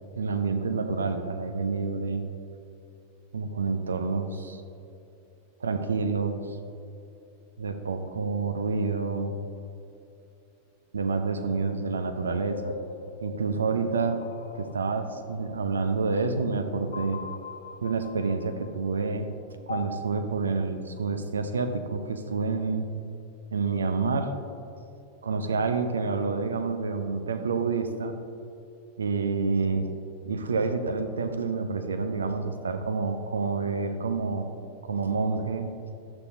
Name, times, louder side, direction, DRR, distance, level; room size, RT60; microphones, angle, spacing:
voice 1, 0.2-2.3 3.3-4.6 5.6-6.4 7.6-9.4 10.9-12.8 13.2-14.2 14.5-17.2 17.8-19.3 19.7-22.9 23.5-24.3 25.2-28.2 29.0-29.9 30.2-34.5 34.8-35.7, right 4 dB, 70° right, 7 dB, 0.6 m, -28 dB
sound 1, 12.5-15.5 16.9-18.9 19.7-19.8, left 5 dB, 65° left, 0.8 m, -41 dB
11.5 x 8.2 x 2.7 m, 2.8 s
figure-of-eight pair, 90°, 0 cm